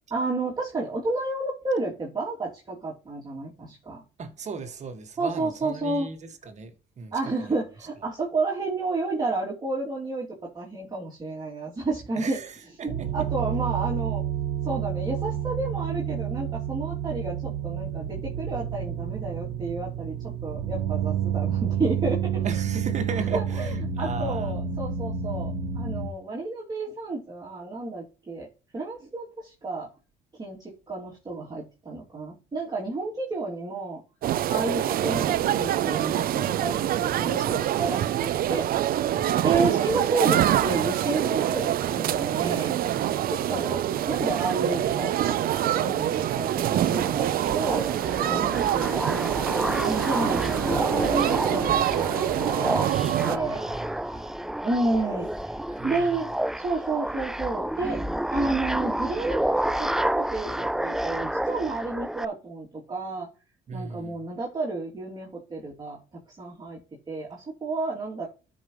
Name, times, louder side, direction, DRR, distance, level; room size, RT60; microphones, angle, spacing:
voice 1, 0.1-4.0 5.2-6.1 7.1-12.4 12.8-14.2 14.6-22.4 23.3-23.7 24.0-28.5 28.7-29.9 30.4-34.0 34.5-38.7 39.4-42.7 43.3-43.8 44.1-47.9 48.3-49.4 49.8-53.6 54.6-55.6 55.8-56.3 56.5-58.0 58.3-63.3 63.7-66.0 66.4-66.8 67.1-68.3, right 3 dB, 25° right, 2.9 m, -31 dB
voice 2, 4.2-7.6 8.0-8.1 12.2-13.3 22.4-24.7 53.3-54.4 55.7-56.3 63.7-64.2, right 4 dB, 45° right, 1.9 m, -37 dB
sound 1, 12.9-26.1, right 8 dB, 85° right, 1.4 m, -29 dB
sound 2, 34.2-53.4, right 11 dB, 60° right, 0.7 m, -25 dB
sound 3, 47.0-62.2, right 1 dB, 5° right, 0.3 m, -29 dB
13.0 x 5.3 x 3.2 m
cardioid pair, 110°, 17 cm